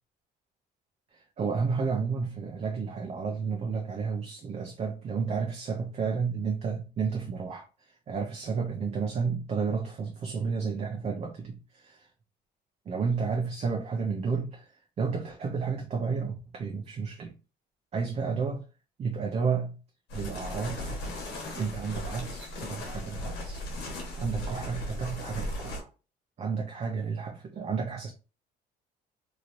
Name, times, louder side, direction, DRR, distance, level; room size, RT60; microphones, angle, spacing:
voice 1, 1.1-7.7 8.1-12.1 12.9-14.7 15.0-17.3 17.9-18.6 19.0-19.8 20.1-21.2 21.6-23.6 24.2-25.9 26.4-28.1, right 5 dB, 40° right, 0.6 m, -31 dB
sound 1, 20.1-25.8, left 1 dB, 90° left, 1.2 m, -37 dB
3.1 x 2.8 x 2.5 m
cardioid pair, 110°, 17 cm